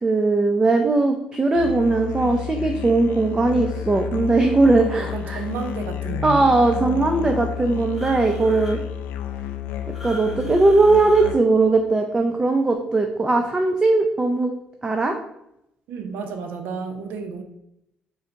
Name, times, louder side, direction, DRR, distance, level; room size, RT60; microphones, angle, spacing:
voice 1, 0.0-5.4 6.2-8.8 10.0-14.5 14.8-15.1, right 3 dB, 25° right, 4 dB, 0.5 m, -19 dB
Musical instrument, 1.5-11.7, left 10 dB, 80° left, 0.4 m, -31 dB
voice 2, 4.7-6.5 15.9-17.4, right 5 dB, 75° right, 6 dB, 0.5 m, -31 dB
sound 1, 7.9-8.8 9.9-11.3, equal, 5° right, 1.2 m, -40 dB
3.8 x 2.6 x 4.4 m, 0.82 s
supercardioid pair, 75°, 3 cm